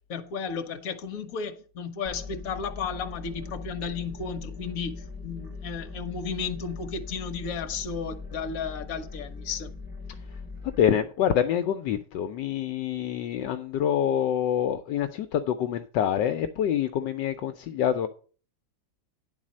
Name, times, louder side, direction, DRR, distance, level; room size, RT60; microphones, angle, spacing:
voice 1, 0.1-9.7, left 5 dB, 55° left, 1.3 m, -34 dB
sound 1, 2.0-10.8, left 4 dB, 5° right, 2.8 m, -40 dB
voice 2, 10.8-18.1, left 9 dB, 75° left, 1.2 m, -26 dB
10.5 x 4.1 x 7.4 m
omnidirectional pair, 2.0 m